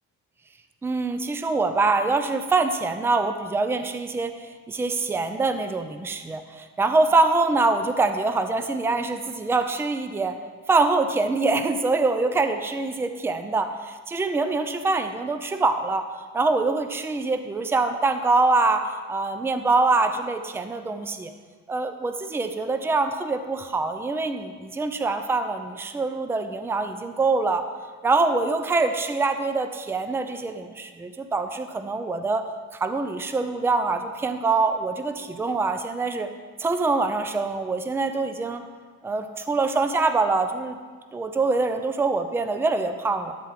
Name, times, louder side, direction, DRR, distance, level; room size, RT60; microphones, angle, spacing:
voice 1, 0.8-4.3 4.7-10.3 10.7-16.0 16.3-21.3 21.7-27.7 28.0-32.4 32.7-36.3 36.6-38.6 39.0-40.8 41.1-43.3, right 3 dB, 5° right, 8 dB, 0.5 m, -24 dB
12.5 x 4.5 x 7.4 m, 1.5 s
cardioid pair, 145°, 35 cm